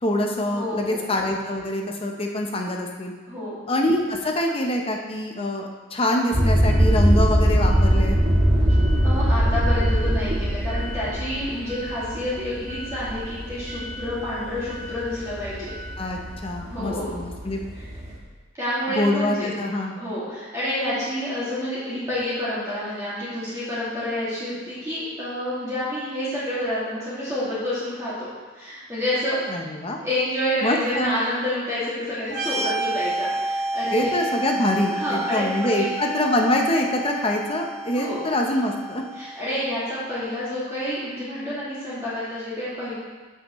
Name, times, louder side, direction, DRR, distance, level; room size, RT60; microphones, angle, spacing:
voice 1, 0.0-3.1 3.7-8.2 16.0-17.6 18.9-20.0 29.5-30.0 30.6-31.2 33.9-39.0, left 1 dB, 30° left, 1 dB, 0.8 m, -25 dB
voice 2, 0.5-1.0 3.3-3.6 9.0-15.7 16.7-17.1 17.7-17.9 18.6-19.5 20.0-28.3 28.5-29.5 30.0-34.2 34.9-35.9 38.0-38.3 39.1-42.9, left 1 dB, 15° right, -11 dB, 2.3 m, -28 dB
sound 1, 6.3-18.2, equal, 30° right, 1.4 m, -22 dB
sound 2, 32.3-39.8, right 2 dB, 60° right, 1.9 m, -30 dB
13.5 x 5.8 x 3.1 m, 1.4 s
head